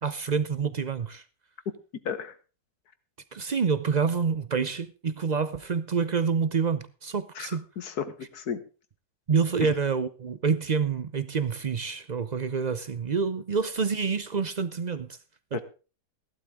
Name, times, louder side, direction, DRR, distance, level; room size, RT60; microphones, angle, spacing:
voice 1, 0.0-1.2 3.3-7.6 9.3-15.2 15.5-15.6, right 5 dB, 55° right, 0.4 m, -27 dB
voice 2, 7.8-8.6 9.6-9.7 15.5-15.6, left 7 dB, 70° left, 1.8 m, -33 dB
16.0 x 12.0 x 3.6 m
omnidirectional pair, 1.7 m